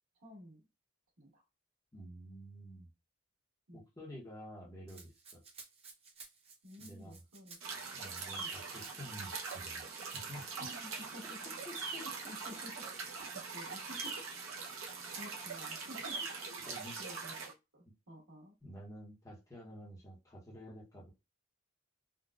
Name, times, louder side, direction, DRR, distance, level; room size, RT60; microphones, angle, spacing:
voice 1, 0.2-0.6 1.2-1.4 3.7-3.8 6.6-7.6 8.4-8.5 10.6-11.4 12.3-12.7 13.2-14.2 15.2-16.2 16.5-16.7 17.0-18.5, equal, 90° right, -4 dB, 1.7 m, -51 dB
voice 2, 1.9-2.9 3.7-5.4 6.8-7.2 7.9-9.9 10.1-10.4 11.6-12.1 12.8-12.9 16.7-17.0 18.6-21.1, equal, 15° left, -4 dB, 0.9 m, -50 dB
Rattle (instrument), 4.9-9.6 9.9-10.2, right 4 dB, 30° right, 0.6 m, -55 dB
sound 1, 7.6-17.5, right 4 dB, 65° right, 0.7 m, -42 dB
3.8 x 2.2 x 2.3 m, 0.25 s
head